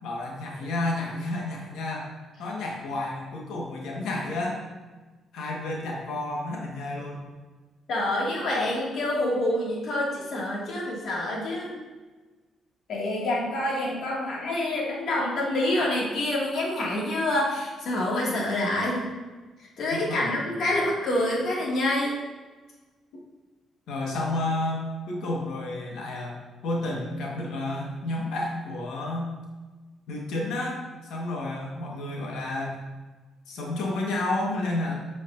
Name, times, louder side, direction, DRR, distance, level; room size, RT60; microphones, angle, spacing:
voice 1, 0.0-2.1 2.4-4.6 5.3-7.3 19.9-20.4 23.9-29.3 30.1-30.8 31.1-32.8 33.5-34.9, left 2 dB, 85° left, -2 dB, 1.4 m, -31 dB
voice 2, 7.9-11.8 12.9-19.1 19.8-22.2, left 1 dB, 65° left, -4 dB, 2.0 m, -27 dB
8.3 x 5.1 x 2.6 m, 1.3 s
cardioid pair, 90°, 0 cm